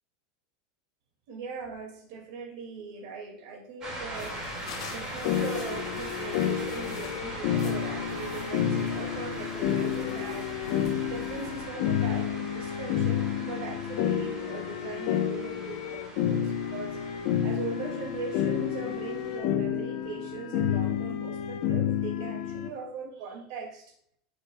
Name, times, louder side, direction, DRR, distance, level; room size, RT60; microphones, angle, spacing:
voice 1, 1.3-4.4 4.9-10.6 11.0-17.0 17.4-23.9, right 4 dB, 55° right, 1 dB, 2.2 m, -40 dB
sound 1, 3.8-19.4, right 1 dB, 25° right, 2.2 m, -41 dB
sound 2, 4.1-11.7, left 5 dB, 85° left, 1.2 m, -45 dB
sound 3, 5.2-22.7, left 9 dB, 50° left, 1.0 m, -30 dB
9.4 x 8.5 x 2.3 m, 0.68 s
supercardioid pair, 175°, 3 cm